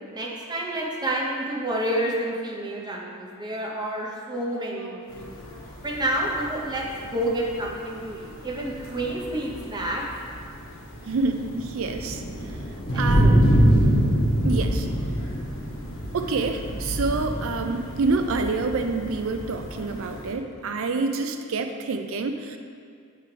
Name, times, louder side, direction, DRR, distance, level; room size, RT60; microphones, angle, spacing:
voice 1, 0.1-5.3 5.8-10.0 12.9-13.4, right 1 dB, 20° right, -2 dB, 0.7 m, -29 dB
sound 1, 5.1-20.3, equal, 55° left, 1.2 m, -26 dB
voice 2, 11.1-12.2 13.0-13.5 14.4-14.9 16.1-22.6, right 3 dB, 60° right, 6 dB, 0.4 m, -27 dB
7.5 x 3.3 x 4.5 m, 2.3 s
head